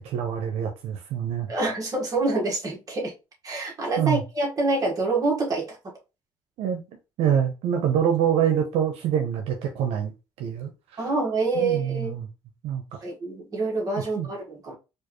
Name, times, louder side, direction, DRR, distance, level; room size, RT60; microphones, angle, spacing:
voice 1, 0.0-1.5 4.0-4.2 6.6-6.8 7.2-10.1 10.4-11.1 11.5-12.3 12.6-13.0 14.1-14.3, right 9 dB, 85° right, 0.8 m, -25 dB
voice 2, 1.5-3.1 3.4-5.8 11.0-12.2 13.0-14.4 14.7-14.8, right 3 dB, 35° right, 1.6 m, -26 dB
4.5 x 2.5 x 3.0 m
cardioid pair, 110°, 10 cm